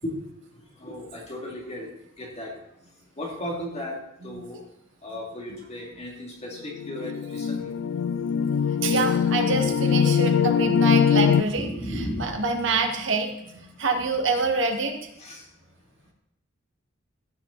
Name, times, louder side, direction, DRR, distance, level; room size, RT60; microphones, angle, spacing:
voice 1, 0.8-1.9 2.2-2.5 3.2-4.0 4.2-4.6 5.0-7.7 11.5-12.2 15.2-15.4, left 1 dB, 35° left, -2 dB, 2.6 m, -35 dB
sound 1, 6.7-11.4, left 7 dB, 70° left, 0.3 m, -22 dB
voice 2, 8.8-11.7 12.2-14.9, right 3 dB, 65° right, 3 dB, 1.7 m, -26 dB
15.5 x 7.1 x 4.0 m, 0.80 s
head